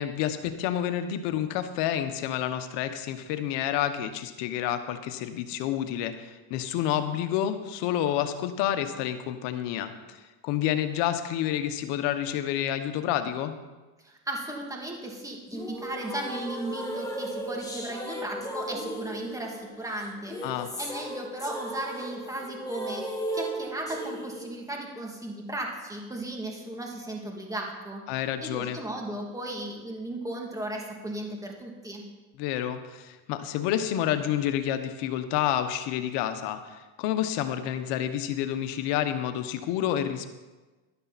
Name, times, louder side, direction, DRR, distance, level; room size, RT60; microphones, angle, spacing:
voice 1, 0.0-13.5 20.4-20.7 28.1-28.8 32.4-40.3, left 11 dB, 70° left, 9 dB, 1.2 m, -29 dB
voice 2, 14.0-20.4 20.8-28.0 28.4-32.0, right 1 dB, 10° right, 0 dB, 2.6 m, -36 dB
sound 1, 15.5-24.5, right 1 dB, 10° left, 2.2 m, -36 dB
13.0 x 11.5 x 4.2 m, 1.2 s
supercardioid pair, 105°, 43 cm